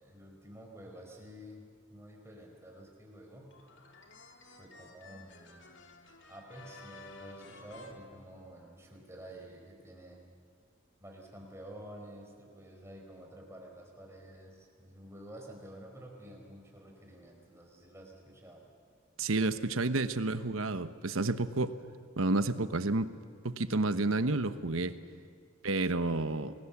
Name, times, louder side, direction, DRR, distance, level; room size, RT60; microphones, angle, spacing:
voice 1, 0.0-1.6 1.9-3.5 4.5-5.9 6.3-10.2 11.0-18.6, right 1 dB, 15° right, 0 dB, 4.7 m, -50 dB
sound 1, 3.5-8.9, left 2 dB, 65° left, 2.5 m, -53 dB
voice 2, 19.2-21.7 22.2-23.1 23.4-24.9 25.6-26.5, right 2 dB, 85° right, 11 dB, 1.1 m, -30 dB
29.5 x 21.0 x 7.3 m, 2.3 s
head